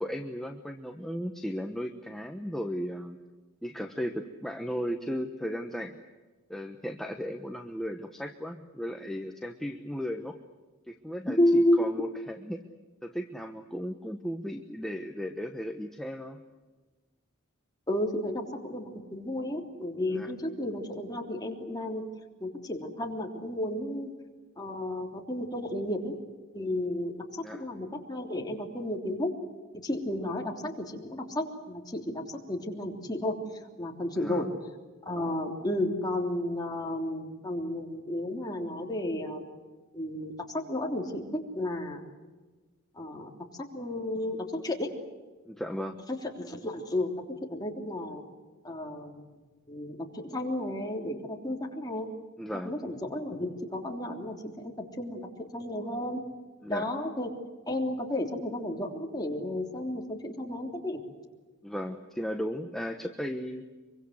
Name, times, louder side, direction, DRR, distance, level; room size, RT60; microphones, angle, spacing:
voice 1, 0.0-3.2 3.6-6.0 6.5-10.4 10.9-12.6 13.0-16.4 20.1-20.3 27.4-27.6 34.1-34.5 45.5-46.0 52.4-52.7 56.6-56.9 61.6-63.7, equal, ahead, 4 dB, 1.1 m, -36 dB
voice 2, 11.3-11.9 17.9-22.0 22.4-24.1 24.6-26.2 26.5-29.3 29.8-32.0 32.5-33.4 33.8-34.5 35.0-39.4 39.9-42.0 42.9-43.3 43.7-44.9 46.3-47.1 47.5-48.2 48.6-49.2 49.7-52.1 52.6-55.2 55.5-56.2 56.7-57.3 57.7-61.0, left 1 dB, 20° left, 1 dB, 3.4 m, -32 dB
24.5 x 24.0 x 8.1 m, 1.3 s
head